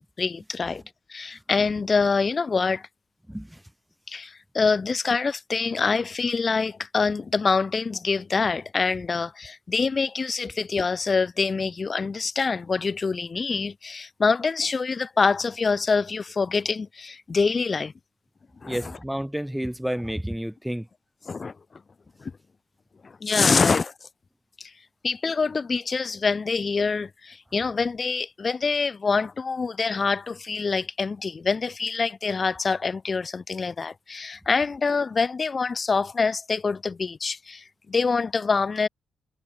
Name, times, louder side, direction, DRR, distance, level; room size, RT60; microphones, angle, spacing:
voice 1, 0.2-0.8 1.1-2.9 4.1-17.9 18.6-18.8 21.2-21.5 22.2-22.3 23.0-24.1 24.6-24.7 25.0-38.9, left 4 dB, 40° left, 1.0 m, -25 dB
voice 2, 3.3-3.6 18.6-20.9, equal, 5° right, 1.9 m, -31 dB
cardioid pair, 75°, 0 cm